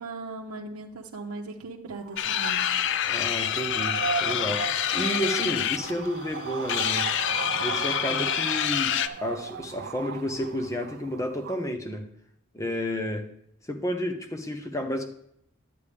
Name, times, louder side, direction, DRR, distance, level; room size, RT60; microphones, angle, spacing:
voice 1, 0.0-2.7, right 3 dB, 85° right, -1 dB, 0.8 m, -38 dB
sound 1, 1.9-11.7, right 6 dB, 45° right, 0.3 m, -37 dB
sound 2, 2.2-9.1, left 10 dB, 55° left, 0.4 m, -27 dB
voice 2, 3.1-7.1 7.6-12.1 12.5-13.3 13.7-15.1, equal, 15° left, 6 dB, 0.8 m, -31 dB
10.0 x 8.5 x 3.4 m, 0.72 s
head